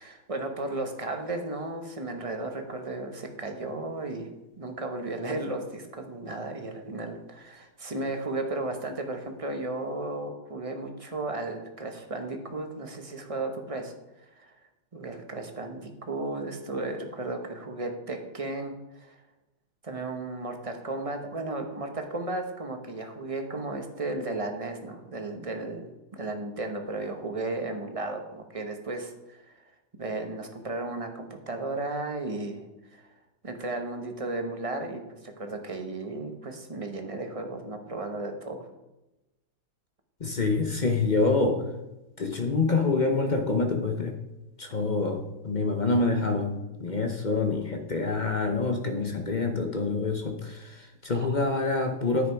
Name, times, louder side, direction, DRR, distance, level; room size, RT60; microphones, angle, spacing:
voice 1, 0.0-4.3 4.6-14.5 14.9-19.1 19.8-32.7 32.9-33.1 33.4-38.7 51.1-51.3, right 2 dB, 25° right, 4 dB, 0.8 m, -34 dB
voice 2, 40.2-41.7 42.2-44.1 44.6-52.3, left 3 dB, 40° left, 4 dB, 0.6 m, -26 dB
10.0 x 8.5 x 4.6 m, 0.98 s
omnidirectional pair, 2.1 m